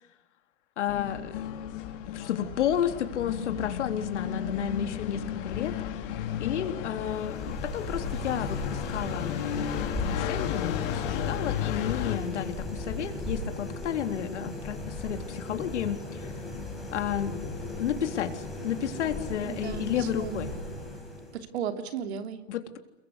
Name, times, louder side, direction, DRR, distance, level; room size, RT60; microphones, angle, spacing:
voice 1, 0.8-1.5 2.1-5.7 6.4-9.4 10.0-16.3 16.9-20.5 22.5-22.8, left 9 dB, 65° left, 7 dB, 3.8 m, -32 dB
sound 1, 0.9-12.2, left 10 dB, 45° left, 3.9 m, -33 dB
sound 2, 6.8-21.5, left 2 dB, ahead, 5.6 m, -37 dB
voice 2, 19.4-20.4 21.3-22.4, right 8 dB, 60° right, 8 dB, 3.2 m, -35 dB
29.5 x 22.5 x 8.2 m, 0.87 s
hypercardioid pair, 150°, 37 cm